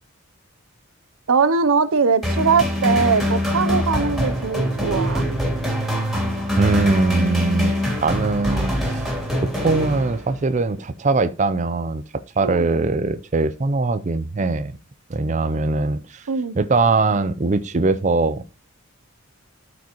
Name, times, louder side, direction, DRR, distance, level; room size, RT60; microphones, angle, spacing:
voice 1, 1.3-5.2 12.4-12.7 16.3-16.6, right 5 dB, 90° right, 0.6 m, -21 dB
sound 1, 2.2-10.5, equal, ahead, 2.9 m, -23 dB
voice 2, 6.6-14.7 15.1-16.3 16.5-18.4, right 3 dB, 35° right, 0.4 m, -21 dB
12.5 x 5.0 x 3.0 m
head